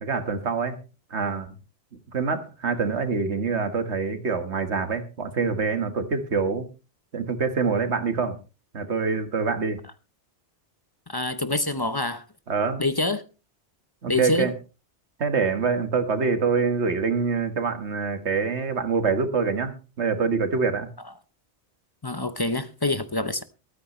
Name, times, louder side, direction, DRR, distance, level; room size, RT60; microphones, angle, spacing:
voice 1, 0.0-0.8 1.1-1.6 2.1-6.7 7.1-8.4 8.7-9.8 12.5-12.8 14.0-14.5 15.2-20.9, right 5 dB, 70° right, 1.9 m, -25 dB
voice 2, 11.1-12.2 12.8-13.2 14.1-14.5 22.0-23.4, left 2 dB, 25° left, 0.7 m, -26 dB
22.5 x 9.4 x 3.1 m
omnidirectional pair, 1.2 m